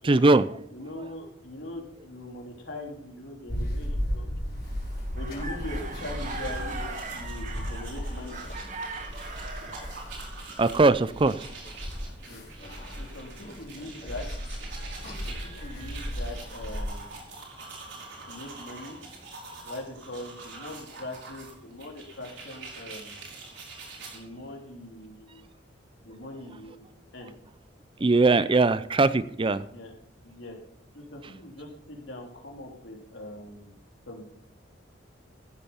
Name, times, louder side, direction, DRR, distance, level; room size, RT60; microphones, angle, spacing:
voice 1, 0.0-0.5 9.1-9.5 10.6-11.5 28.0-29.7, right 3 dB, 30° right, 15 dB, 0.5 m, -21 dB
voice 2, 0.7-4.2 5.1-8.4 12.3-12.4 13.0-14.2 15.2-17.3 18.2-19.0 19.6-23.2 24.0-25.4 26.0-26.9 27.1-27.3 29.7-29.9 30.2-30.6 30.9-33.7 34.1-34.3, left 1 dB, 85° left, 0 dB, 3.4 m, -41 dB
sound 1, 3.5-16.8, equal, 60° left, 5.0 m, -36 dB
sound 2, 4.5-10.1 14.4-16.3 17.1-19.3, right 3 dB, 45° right, 1.5 m, -42 dB
sound 3, 5.9-24.2, right 3 dB, 70° right, 4.8 m, -45 dB
15.0 x 8.3 x 5.6 m, 0.68 s
head